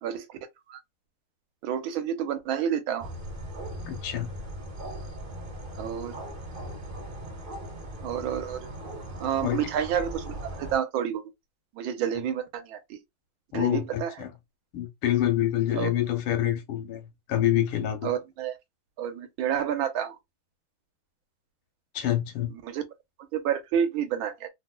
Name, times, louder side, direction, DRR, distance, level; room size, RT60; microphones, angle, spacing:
voice 1, 1.6-3.1 5.8-6.2 8.0-8.7 9.2-11.2 11.7-13.0 13.5-14.1 15.7-15.9 18.0-18.5 19.0-20.2 22.6-22.8 23.3-24.5, right 9 dB, 80° right, 1.5 m, -29 dB
sound 1, 3.0-10.8, right 1 dB, 35° right, 0.9 m, -39 dB
voice 2, 3.8-4.3 9.4-9.6 13.5-14.3 14.7-18.1 21.9-22.5, left 12 dB, 90° left, 1.8 m, -27 dB
4.1 x 2.4 x 2.2 m
omnidirectional pair, 2.3 m